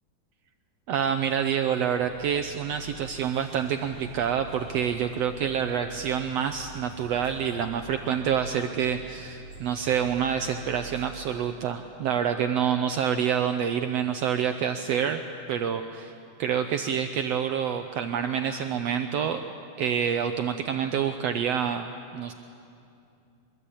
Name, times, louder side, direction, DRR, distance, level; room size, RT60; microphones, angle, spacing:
voice 1, 0.9-15.2 15.5-16.1 16.4-19.4 19.8-21.9 22.1-22.3, right 8 dB, 75° right, 7 dB, 1.5 m, -27 dB
sound 1, 1.9-11.1, right 4 dB, 85° left, 7.5 m, -45 dB
23.0 x 23.0 x 8.5 m, 2.5 s
omnidirectional pair, 3.6 m